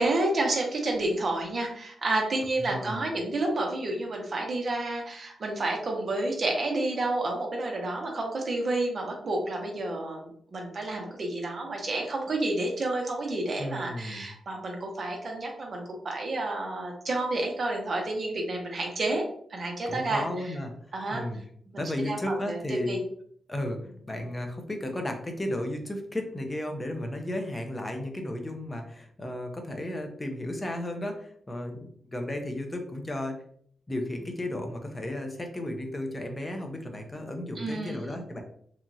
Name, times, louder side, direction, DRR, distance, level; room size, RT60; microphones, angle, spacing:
voice 1, 0.0-19.2 19.5-20.6 20.9-21.2 21.7-23.0 37.6-38.0, right 2 dB, 40° right, 0 dB, 0.7 m, -30 dB
voice 2, 2.6-3.0 13.6-14.2 19.9-21.4 21.8-23.0 23.5-33.4 33.9-38.4, left 1 dB, 15° left, 4 dB, 0.5 m, -34 dB
2.9 x 2.3 x 2.6 m, 0.62 s
wide cardioid pair, 150°, 0 cm